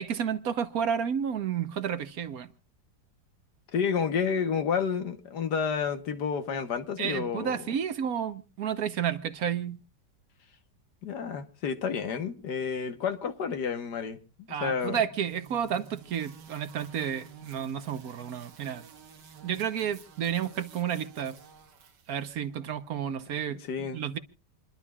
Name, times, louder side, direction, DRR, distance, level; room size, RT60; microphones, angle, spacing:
voice 1, 0.0-2.5 7.0-9.8 14.5-18.8 19.4-21.3 22.1-24.2, right 8 dB, 65° right, 1.3 m, -31 dB
voice 2, 3.7-7.7 11.0-14.2 14.6-15.0 23.7-24.0, left 6 dB, 75° left, 1.8 m, -30 dB
sound 1, 15.2-22.4, right 6 dB, 80° right, 1.9 m, -52 dB
28.5 x 11.5 x 2.4 m
omnidirectional pair, 1.8 m